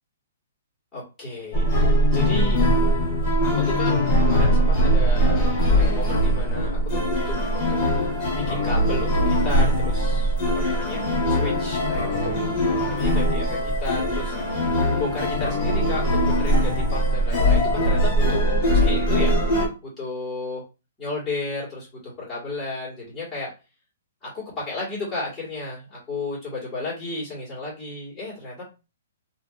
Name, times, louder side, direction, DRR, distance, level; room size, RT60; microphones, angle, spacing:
voice 1, 0.9-2.7 3.4-7.8 8.3-12.3 12.8-14.3 15.0-18.5 18.8-19.3 19.8-20.6 21.0-23.5 24.2-28.6, left 2 dB, 10° left, -7 dB, 1.5 m, -33 dB
sound 1, 1.5-19.7, equal, 25° left, 1.7 m, -21 dB
2.8 x 2.8 x 2.3 m, 0.29 s
hypercardioid pair, 165°, 0 cm